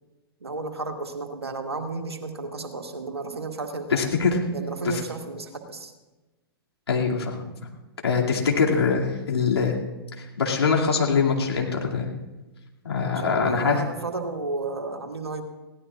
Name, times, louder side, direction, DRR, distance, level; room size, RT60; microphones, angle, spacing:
voice 1, 0.4-4.0 4.5-5.9 13.1-15.4, right 3 dB, 90° right, 4 dB, 1.8 m, -33 dB
voice 2, 3.9-4.4 4.8-5.0 6.9-7.4 8.0-9.8 10.2-12.1 12.8-13.8, left 5 dB, 80° left, -1 dB, 2.4 m, -23 dB
22.0 x 17.0 x 2.4 m, 1.1 s
figure-of-eight pair, 110°, 13 cm